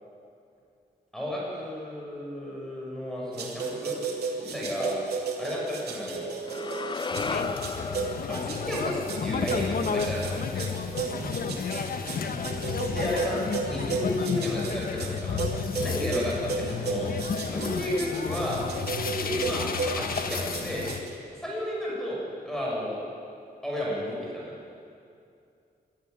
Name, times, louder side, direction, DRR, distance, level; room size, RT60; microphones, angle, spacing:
voice 1, 1.1-4.0 4.4-4.9 5.4-6.3 8.3-10.7 12.8-15.4 15.7-17.1 17.4-18.6 19.0-20.9 21.3-23.0 23.6-24.5, left 1 dB, 5° left, -5 dB, 6.6 m, -32 dB
sound 1, 3.4-21.1, right 4 dB, 90° right, 2.9 m, -34 dB
sound 2, 6.5-10.7, left 4 dB, 30° left, 0.6 m, -36 dB
sound 3, 7.1-21.0, left 6 dB, 65° left, 1.3 m, -32 dB
voice 2, 11.1-11.7 12.6-13.2, right 1 dB, 25° right, -4 dB, 6.1 m, -42 dB
23.0 x 13.5 x 9.5 m, 2.5 s
wide cardioid pair, 110°, 16 cm